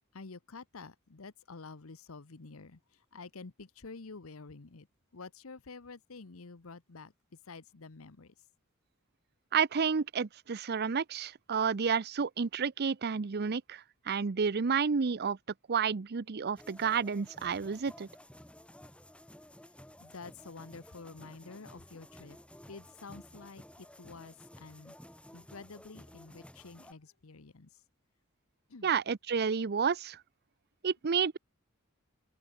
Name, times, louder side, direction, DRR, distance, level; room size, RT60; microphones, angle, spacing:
voice 1, 0.1-4.9 5.1-7.1 7.4-8.3 20.0-22.4 22.7-24.9 25.3-27.8 28.7-28.9, left 4 dB, 80° left, 1.0 m, -49 dB
voice 2, 9.5-15.4 15.7-18.1 28.8-30.2 30.8-31.4, right 6 dB, 50° right, 0.6 m, -30 dB
sound 1, 16.6-26.9, left 1 dB, 5° left, 4.4 m, -54 dB
open air
head